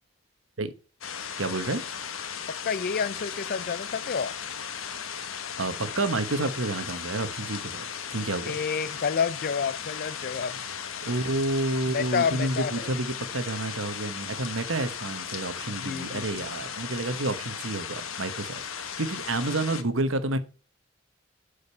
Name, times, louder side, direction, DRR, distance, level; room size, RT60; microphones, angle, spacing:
sound 1, 1.0-19.8, left 7 dB, 85° left, 1.3 m, -36 dB
voice 1, 1.4-1.8 5.6-7.8 8.1-8.5 11.0-20.4, right 2 dB, 75° right, 1.2 m, -29 dB
voice 2, 2.6-4.3 8.5-10.6 11.9-12.9 15.8-16.4, left 6 dB, 50° left, 0.5 m, -29 dB
11.5 x 5.2 x 5.5 m
head